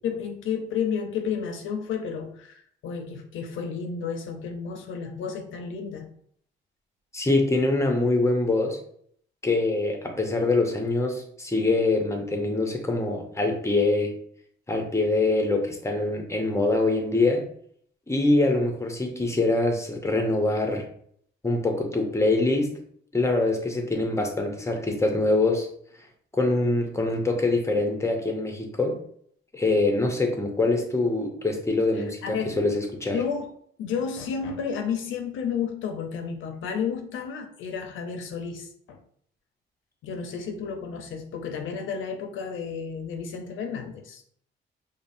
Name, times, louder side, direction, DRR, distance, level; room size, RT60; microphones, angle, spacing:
voice 1, 0.0-6.1 32.2-32.6 33.1-33.5 33.8-39.0 40.0-44.2, left 6 dB, 75° left, 5 dB, 0.7 m, -31 dB
voice 2, 7.1-8.8 9.4-14.1 14.7-17.4 18.1-20.9 21.4-22.7 23.1-25.7 26.3-29.0 29.5-33.2, left 2 dB, 15° left, 3 dB, 0.8 m, -24 dB
5.2 x 2.1 x 2.6 m, 0.64 s
cardioid pair, 90°, 20 cm